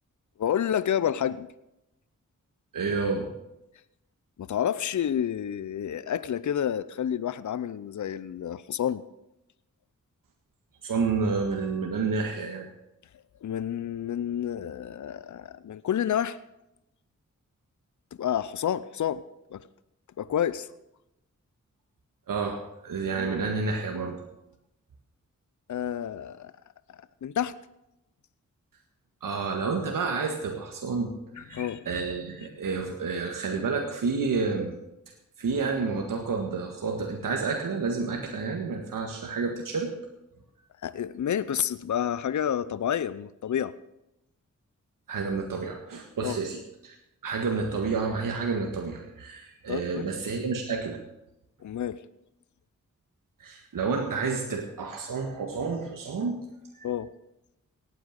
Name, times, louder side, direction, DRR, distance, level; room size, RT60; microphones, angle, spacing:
voice 1, 0.4-1.5 4.4-9.0 13.4-16.4 18.2-19.2 19.5-19.6 20.2-20.7 25.7-26.5 27.2-27.5 31.4-31.9 40.8-43.7 46.2-46.4 49.7-50.1 51.6-52.0 56.8-57.1, left 9 dB, 65° left, 17 dB, 0.6 m, -29 dB
voice 2, 2.7-3.3 10.8-12.7 22.3-24.2 29.2-34.8 35.4-39.9 45.1-47.0 47.2-51.0 53.4-56.4 56.7-56.9, right 4 dB, 85° right, 2 dB, 1.7 m, -30 dB
18.0 x 8.9 x 6.6 m, 0.88 s
cardioid pair, 45°, 32 cm